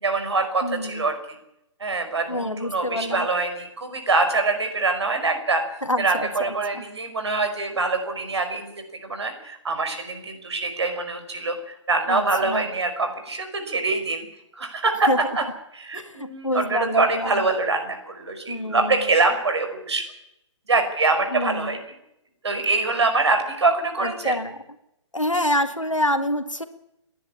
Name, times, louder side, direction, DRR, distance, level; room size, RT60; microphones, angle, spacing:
voice 1, 0.0-1.2 1.8-5.6 6.0-8.7 9.0-14.3 14.6-15.4 15.7-20.0 20.7-21.8 22.4-24.4, right 3 dB, 60° right, 6 dB, 5.4 m, -24 dB
voice 2, 0.6-1.0 2.3-3.3 5.8-6.8 12.1-12.7 15.1-15.2 15.9-17.4 18.5-19.0 21.3-21.8 24.0-24.6 25.1-26.6, left 1 dB, 90° left, 9 dB, 2.0 m, -27 dB
30.0 x 11.0 x 8.6 m, 0.83 s
figure-of-eight pair, 130°, 16 cm